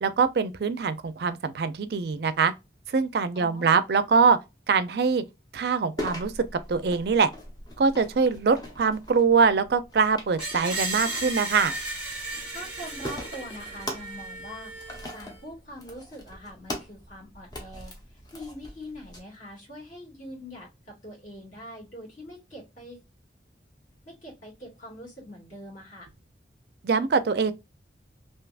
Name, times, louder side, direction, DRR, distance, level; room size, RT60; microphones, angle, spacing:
voice 1, 0.0-2.5 2.9-4.4 4.7-5.2 5.5-6.3 6.7-7.3 7.8-11.7 26.8-27.5, right 5 dB, 60° right, 0.4 m, -23 dB
voice 2, 3.3-3.8 12.5-17.9 18.3-23.0 24.1-26.1, equal, 45° left, 1.9 m, -43 dB
sound 1, 6.0-19.2, left 1 dB, 20° left, 0.7 m, -41 dB
Screech, 10.4-15.4, right 2 dB, 5° right, 1.1 m, -35 dB
3.3 x 2.7 x 2.4 m
head